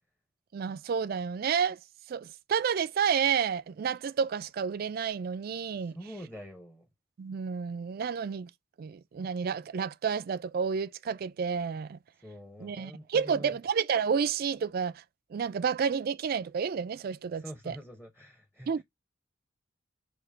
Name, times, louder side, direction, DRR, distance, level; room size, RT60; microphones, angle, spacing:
voice 1, 0.5-1.8 2.1-5.9 7.2-8.5 8.8-12.0 12.6-15.0 15.3-17.8 18.7-18.8, right 6 dB, 50° right, 0.3 m, -30 dB
voice 2, 5.8-6.9 12.2-13.6 17.3-18.8, equal, 5° left, 0.7 m, -45 dB
4.9 x 2.9 x 3.2 m
head